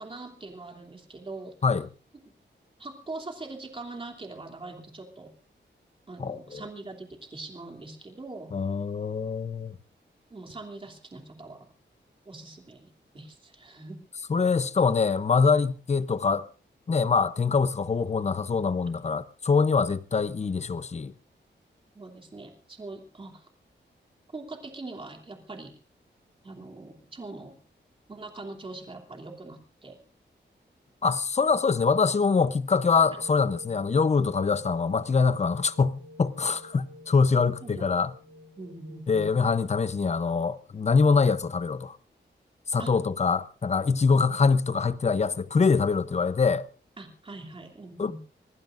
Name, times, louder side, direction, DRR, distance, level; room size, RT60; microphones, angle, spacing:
voice 1, 0.0-1.5 2.8-5.3 6.1-8.5 10.3-11.7 12.2-14.0 21.9-23.5 24.3-25.7 26.4-27.5 28.1-30.0 37.6-37.9 38.6-39.4 42.8-42.9 47.0-48.2, right 2 dB, 25° right, 3.0 m, -42 dB
voice 2, 6.2-6.6 8.5-9.8 14.3-16.5 16.9-21.1 31.0-38.1 39.1-42.0 42.7-46.6 48.0-48.2, left 5 dB, 35° left, 0.8 m, -24 dB
sound 1, 33.0-39.0, left 1 dB, 85° right, 3.3 m, -49 dB
25.5 x 19.5 x 2.6 m
wide cardioid pair, 165°, 19 cm